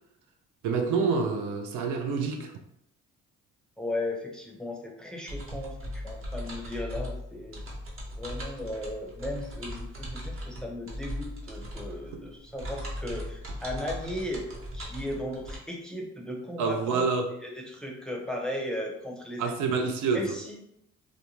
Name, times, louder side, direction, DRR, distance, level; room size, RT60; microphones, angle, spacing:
voice 1, 0.6-2.5 12.1-12.2 16.6-17.3 19.4-20.4, right 4 dB, 80° right, 0.5 m, -27 dB
voice 2, 3.8-7.6 8.1-14.5 14.7-17.1 17.4-19.4 20.1-20.6, left 1 dB, ahead, 0.6 m, -36 dB
sound 1, 5.3-15.6, equal, 45° right, 0.9 m, -38 dB
2.5 x 2.2 x 3.0 m
cardioid pair, 90°, 30 cm